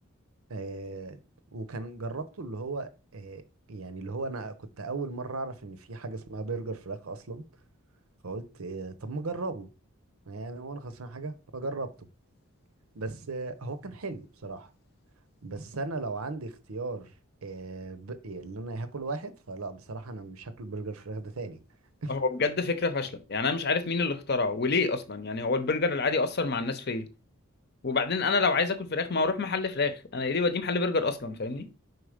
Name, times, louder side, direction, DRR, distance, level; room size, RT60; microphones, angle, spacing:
voice 1, 0.5-1.2 1.5-3.4 3.7-7.4 8.2-9.7 10.3-12.1 12.9-14.7 15.4-17.1 17.4-21.6 22.0-22.2, right 3 dB, 90° right, 0.8 m, -37 dB
voice 2, 22.1-27.1 27.8-31.7, left 4 dB, 50° left, 0.7 m, -27 dB
4.8 x 4.0 x 5.0 m
head